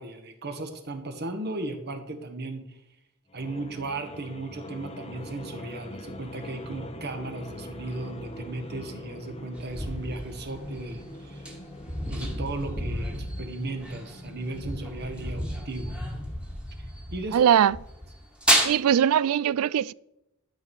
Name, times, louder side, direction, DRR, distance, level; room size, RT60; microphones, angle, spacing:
voice 1, 0.0-2.6 3.3-11.4 12.1-16.0 17.1-17.4, right 2 dB, 50° right, 1.5 m, -36 dB
sound 1, 3.3-16.6, left 1 dB, 30° left, 1.1 m, -43 dB
sound 2, 9.6-17.4 17.6-18.7, right 1 dB, 5° right, 1.7 m, -31 dB
voice 2, 17.3-17.8 18.6-19.9, right 9 dB, 75° right, 0.3 m, -21 dB
12.0 x 6.3 x 5.5 m
head